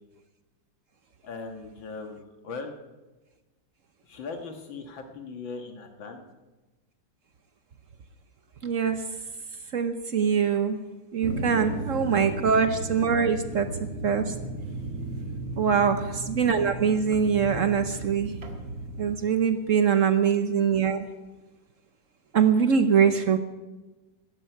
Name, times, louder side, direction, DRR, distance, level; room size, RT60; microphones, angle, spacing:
voice 1, 1.2-2.7 4.0-6.2 11.5-11.8 12.1-12.4 15.6-16.0 19.8-20.1 22.8-23.1, left 4 dB, 85° left, 4 dB, 2.3 m, -40 dB
voice 2, 8.6-9.0 9.7-10.8 11.1-13.7 14.0-14.3 15.6-18.3 19.0-21.0 22.3-23.4, right 7 dB, 55° right, 8 dB, 1.0 m, -23 dB
sound 1, 11.2-19.1, right 2 dB, 80° right, 2.5 m, -35 dB
16.5 x 13.5 x 4.6 m, 1.2 s
omnidirectional pair, 2.1 m